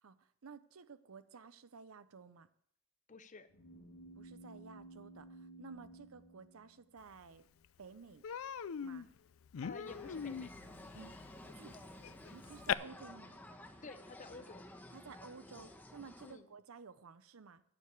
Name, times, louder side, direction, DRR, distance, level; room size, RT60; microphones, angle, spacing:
voice 1, 0.0-2.5 4.1-7.5 7.8-8.3 8.8-9.1 10.8-11.2 11.5-11.8 12.3-13.4 14.9-17.6, right 5 dB, 80° right, 14 dB, 0.7 m, -54 dB
voice 2, 3.1-3.5 9.6-10.5 13.8-14.6 16.2-16.5, left 3 dB, 35° left, 12 dB, 0.7 m, -51 dB
sound 1, 3.5-7.2, right 2 dB, 90° left, 2.3 m, -55 dB
Human voice, 7.2-7.3 7.6-7.8 8.2-12.7, left 8 dB, 70° left, 0.4 m, -41 dB
sound 2, 9.8-16.3, left 1 dB, 10° left, 1.0 m, -53 dB
9.8 x 6.7 x 8.4 m, 0.70 s
head